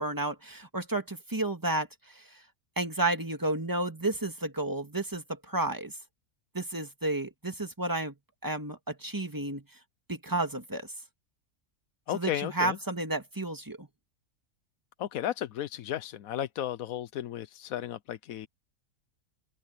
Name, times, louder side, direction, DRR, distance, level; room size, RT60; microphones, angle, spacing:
voice 1, 0.0-1.9 2.2-2.3 2.8-5.9 6.5-8.1 8.4-9.6 10.1-10.9 12.1-13.9, right 2 dB, 15° right, 1.9 m, -31 dB
voice 2, 12.1-12.8 15.0-18.5, left 11 dB, 70° left, 1.1 m, -34 dB
open air
omnidirectional pair, 1.6 m